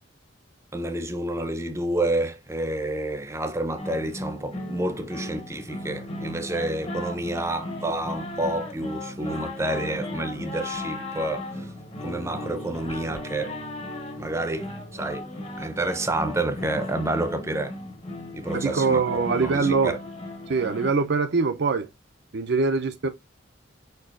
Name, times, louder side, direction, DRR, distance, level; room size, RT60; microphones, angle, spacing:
voice 1, 0.7-11.7 12.0-13.6 14.2-15.3 15.6-17.8 18.3-19.0 19.4-20.0, right 2 dB, 15° right, 0.6 m, -29 dB
sound 1, 3.8-20.9, left 1 dB, 30° left, 1.0 m, -36 dB
voice 2, 18.5-19.9 20.5-21.9 22.3-23.1, right 4 dB, 60° right, 0.5 m, -23 dB
4.8 x 4.5 x 2.5 m
head